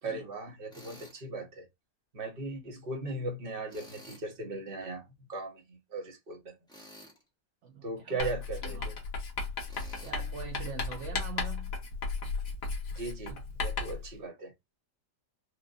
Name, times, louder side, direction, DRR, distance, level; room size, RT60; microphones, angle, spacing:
voice 1, 0.0-1.7 2.1-6.5 7.8-9.0 12.9-14.5, right 2 dB, 35° right, 1.1 m, -38 dB
Tools, 0.7-1.2 3.7-4.3 6.7-7.2 9.7-10.2, equal, 5° left, 0.9 m, -51 dB
voice 2, 7.6-8.3 8.6-8.9 10.0-11.7 13.3-13.4, right 6 dB, 55° right, 0.9 m, -43 dB
Writing, 8.2-14.1, left 4 dB, 55° left, 1.5 m, -35 dB
4.4 x 2.5 x 2.5 m
omnidirectional pair, 1.9 m